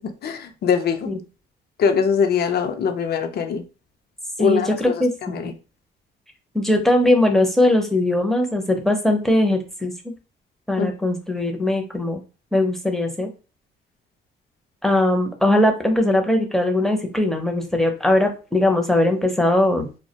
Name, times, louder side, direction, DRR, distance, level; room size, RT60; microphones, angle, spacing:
voice 1, 0.2-1.1 1.8-3.6 4.4-5.0 5.3-5.5 10.8-10.9, left 6 dB, 55° left, 7 dB, 0.5 m, -22 dB
voice 2, 4.4-5.5 6.5-9.9 10.7-12.2 12.5-13.3 14.8-19.9, left 1 dB, ahead, 3 dB, 0.5 m, -20 dB
2.2 x 2.1 x 2.8 m, 0.33 s
cardioid pair, 90°, 20 cm